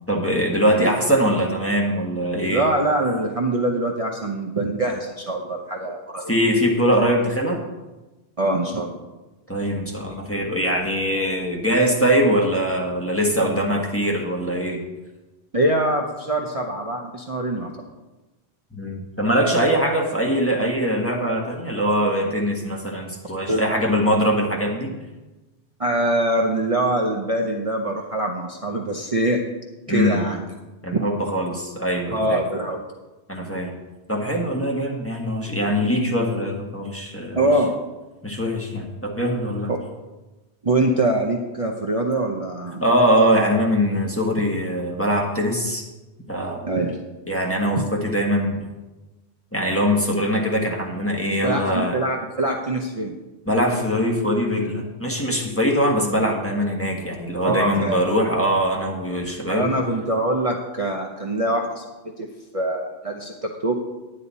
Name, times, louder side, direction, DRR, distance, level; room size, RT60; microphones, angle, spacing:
voice 1, 0.1-2.6 6.3-7.6 9.5-14.8 18.7-24.9 29.9-30.3 30.8-32.4 33.3-33.7 34.1-37.4 38.2-39.7 42.8-45.8 46.3-46.7 47.3-48.6 49.5-52.0 53.5-59.7, equal, 10° left, 0 dB, 1.4 m, -22 dB
voice 2, 2.4-6.3 8.4-9.0 15.5-17.7 23.5-23.6 25.8-29.4 29.9-30.4 30.9-31.0 32.1-32.8 37.4-37.7 39.7-39.8 40.6-42.8 46.6-47.0 51.4-53.1 57.4-58.0 59.5-61.9 62.2-62.3 62.5-63.7, right 1 dB, 35° right, 0 dB, 0.8 m, -23 dB
10.5 x 9.9 x 4.1 m, 1.1 s
omnidirectional pair, 1.1 m